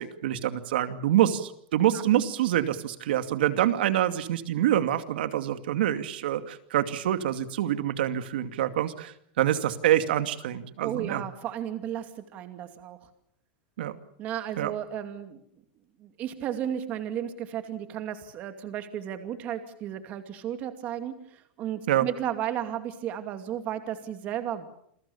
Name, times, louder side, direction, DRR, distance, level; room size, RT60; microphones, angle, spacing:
voice 1, 0.0-11.3 13.8-13.9 14.6-14.7 21.9-22.0, right 12 dB, 70° right, 10 dB, 2.5 m, -26 dB
voice 2, 10.8-12.1 12.3-13.0 14.2-15.4 16.0-24.7, right 10 dB, 25° right, 8 dB, 2.5 m, -34 dB
28.5 x 22.5 x 7.2 m, 0.69 s
supercardioid pair, 175°, 6 cm